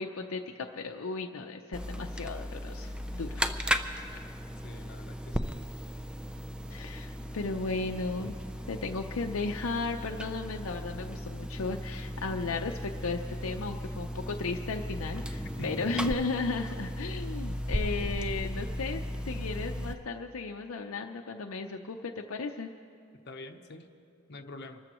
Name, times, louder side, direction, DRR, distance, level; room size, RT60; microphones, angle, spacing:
voice 1, 0.0-3.5 4.1-4.3 6.7-8.4 8.7-22.7, left 3 dB, 75° left, 4 dB, 0.6 m, -35 dB
sound 1, 1.7-19.9, equal, 5° right, 0.5 m, -36 dB
voice 2, 4.6-5.5 15.6-15.9 23.2-23.9 24.3-24.8, left 2 dB, 55° left, 4 dB, 0.9 m, -45 dB
26.5 x 14.0 x 3.1 m, 2.6 s
head